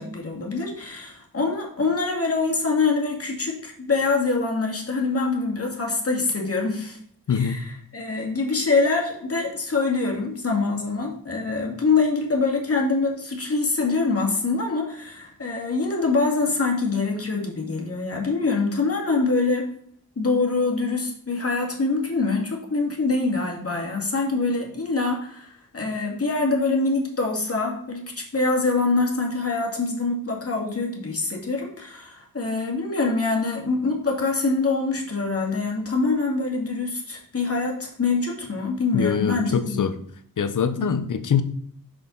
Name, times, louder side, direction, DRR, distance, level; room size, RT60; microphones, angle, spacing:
voice 1, 0.0-7.0 7.3-19.7 20.2-39.9 40.8-41.1, left 3 dB, 40° left, 0 dB, 2.1 m, -24 dB
voice 2, 7.3-7.6 38.9-39.9 40.4-41.4, left 7 dB, 60° left, 11 dB, 0.8 m, -23 dB
6.4 x 5.8 x 3.9 m, 0.64 s
wide cardioid pair, 85°, 35 cm